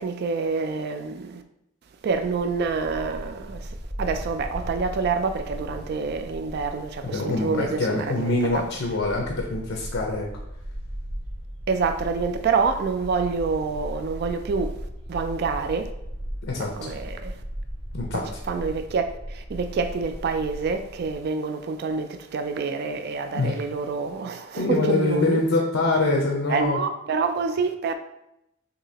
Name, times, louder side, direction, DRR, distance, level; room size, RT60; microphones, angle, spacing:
voice 1, 0.0-1.4 2.0-3.7 4.0-8.3 11.7-15.9 16.6-17.3 18.5-25.4 26.5-27.9, right 4 dB, 55° right, 0.3 m, -27 dB
Bark, 2.0-21.1, equal, 75° right, 1.4 m, -37 dB
voice 2, 7.0-10.3 16.4-16.9 17.9-18.2 23.3-23.5 24.6-26.8, left 2 dB, 85° left, 0.7 m, -24 dB
6.6 x 2.9 x 2.8 m
head